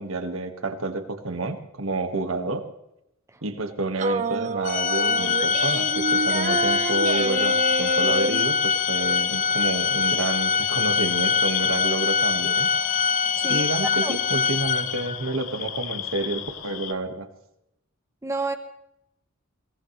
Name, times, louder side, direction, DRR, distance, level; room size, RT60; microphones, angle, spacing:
voice 1, 0.0-2.6 3.4-12.7 13.5-17.3, right 2 dB, 70° right, 7 dB, 1.7 m, -29 dB
sound 1, 4.0-8.4, right 3 dB, 40° right, 0.9 m, -28 dB
Organ, 4.6-15.3, left 5 dB, 40° left, 0.6 m, -24 dB
sound 2, 5.2-16.9, left 11 dB, 85° left, 1.0 m, -33 dB
voice 2, 13.4-13.7 14.0-14.2 18.2-18.6, right 3 dB, 15° right, 7 dB, 0.8 m, -30 dB
22.5 x 18.0 x 3.2 m, 0.82 s
head